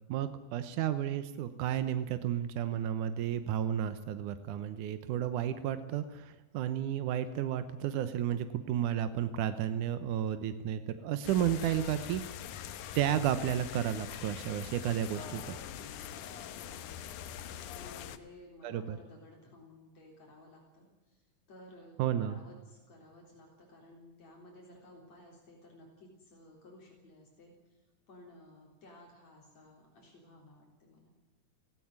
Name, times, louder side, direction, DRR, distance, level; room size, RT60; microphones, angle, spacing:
voice 1, 0.1-12.2 13.0-15.6 18.6-19.0 22.0-22.4, right 10 dB, 85° right, 11 dB, 2.5 m, -32 dB
sound 1, 11.2-18.2, left 9 dB, 80° left, 2.6 m, -43 dB
voice 2, 15.6-31.1, left 1 dB, 60° left, -1 dB, 5.0 m, -56 dB
18.0 x 17.0 x 9.7 m, 1.1 s
omnidirectional pair, 3.5 m